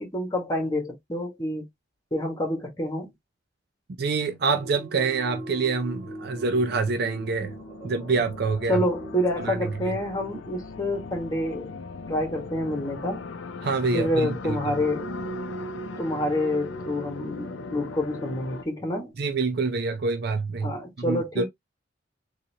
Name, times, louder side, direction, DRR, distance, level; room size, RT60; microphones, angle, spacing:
voice 1, 0.0-1.6 2.1-3.1 8.7-11.7 12.1-13.3 13.9-15.1 15.5-15.6 16.0-19.1 20.6-21.4, left 1 dB, 20° left, 1.4 m, -28 dB
voice 2, 4.0-7.6 7.8-8.8 9.4-9.9 13.6-14.7 19.2-21.4, right 4 dB, 55° right, 0.5 m, -26 dB
sound 1, 4.4-13.7 14.6-19.1, right 3 dB, 10° right, 2.2 m, -43 dB
sound 2, 5.9-18.6, left 4 dB, 85° left, 0.5 m, -39 dB
4.1 x 3.0 x 2.8 m
head